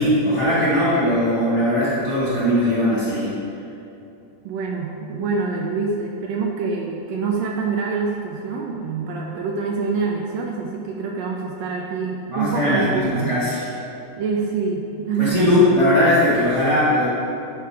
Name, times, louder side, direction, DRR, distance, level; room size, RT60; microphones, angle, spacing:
voice 1, 0.0-3.4 12.3-13.7 15.2-17.1, left 1 dB, 35° left, -10 dB, 1.2 m, -19 dB
voice 2, 4.4-13.4 14.2-15.6, right 5 dB, 80° right, 0 dB, 1.6 m, -26 dB
9.1 x 3.6 x 4.6 m, 2.8 s
omnidirectional pair, 3.3 m